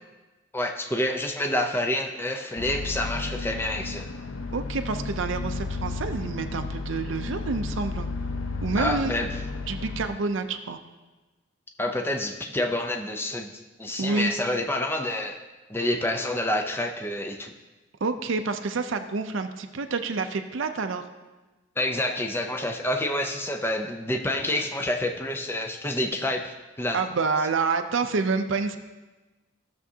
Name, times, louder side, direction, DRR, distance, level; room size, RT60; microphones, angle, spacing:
voice 1, 0.5-4.1 8.8-9.3 11.8-13.5 13.8-15.4 15.7-17.5 21.8-27.0, left 1 dB, 10° left, 4 dB, 0.5 m, -28 dB
sound 1, 2.6-10.1, left 3 dB, 85° left, 0.7 m, -33 dB
voice 2, 4.5-8.1 8.6-9.2 9.7-10.8 14.0-14.3 18.0-21.0 26.9-28.8, right 4 dB, 70° right, 7 dB, 0.5 m, -28 dB
15.0 x 6.9 x 2.8 m, 1.2 s
head